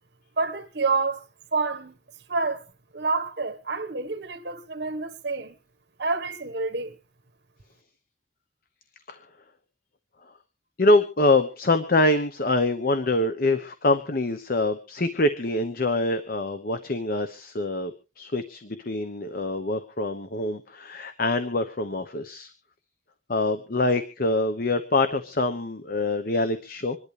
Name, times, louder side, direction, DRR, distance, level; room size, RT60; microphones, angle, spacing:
voice 1, 0.4-1.2 1.5-2.0 2.3-2.6 2.9-5.6 6.0-7.0, right 4 dB, 60° right, 1.4 m, -28 dB
voice 2, 10.8-22.5 23.3-27.0, left 2 dB, 50° left, 1.0 m, -25 dB
26.0 x 11.0 x 3.3 m
head